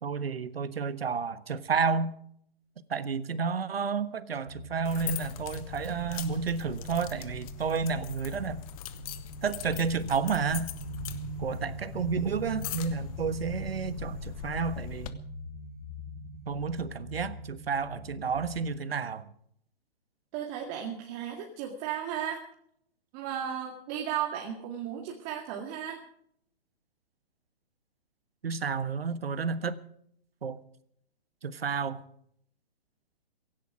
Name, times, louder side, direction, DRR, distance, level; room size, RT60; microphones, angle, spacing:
voice 1, 0.0-2.1 2.9-8.6 9.4-10.7 11.4-15.2 16.5-19.3 28.4-29.8 30.4-30.6 31.4-32.0, right 5 dB, 75° right, 1.4 m, -31 dB
sound 1, 4.5-18.5, equal, 50° right, 3.9 m, -42 dB
sound 2, 4.8-15.1, left 12 dB, 35° left, 1.2 m, -42 dB
voice 2, 20.3-22.4 23.1-26.0, right 9 dB, 30° right, 2.2 m, -35 dB
16.5 x 16.0 x 4.9 m
figure-of-eight pair, 130°, 30 cm